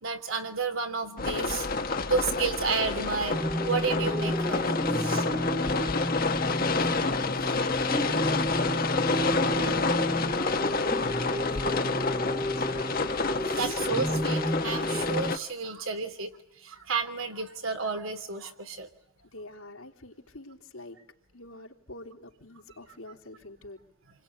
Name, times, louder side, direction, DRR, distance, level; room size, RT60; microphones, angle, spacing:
voice 1, 0.0-3.4 3.6-5.2 13.3-18.9, right 4 dB, 75° right, 6 dB, 2.9 m, -32 dB
sound 1, 1.2-15.4, left 3 dB, 45° left, 1.2 m, -29 dB
sound 2, 3.3-15.3, equal, ahead, 1.2 m, -32 dB
voice 2, 5.0-7.2 7.5-7.9 8.2-12.9 13.6-13.9 19.3-21.0 21.3-23.8, left 1 dB, 85° left, 1 dB, 3.6 m, -45 dB
28.5 x 21.5 x 9.6 m, 0.75 s
head